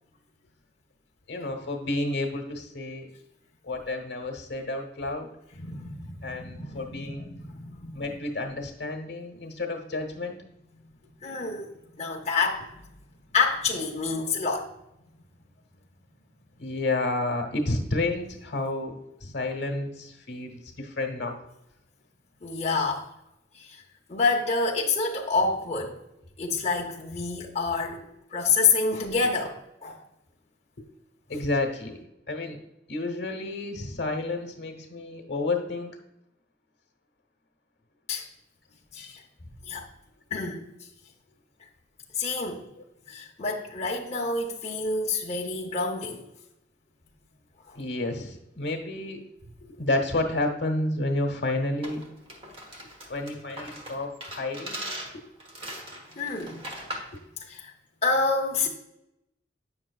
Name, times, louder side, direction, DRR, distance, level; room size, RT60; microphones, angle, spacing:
voice 1, 1.3-3.1 3.6-5.3 6.2-7.3 7.9-10.4 16.6-21.4 31.3-32.6 32.9-36.0 47.7-49.2 49.6-52.0 53.1-54.8 55.1-55.2, left 2 dB, 70° left, 1.1 m, -30 dB
voice 2, 5.6-8.1 11.2-11.7 12.0-12.6 13.3-14.7 22.4-23.1 23.6-23.8 24.1-26.0 26.4-28.0 28.3-30.0 38.1-38.2 38.9-39.2 39.6-39.8 40.3-40.6 42.1-42.7 43.1-46.2 56.2-56.6 57.4-57.7 58.0-58.7, left 4 dB, 35° left, 0.8 m, -28 dB
sound 1, 51.8-57.2, right 1 dB, 30° right, 1.2 m, -40 dB
8.8 x 6.2 x 2.3 m
head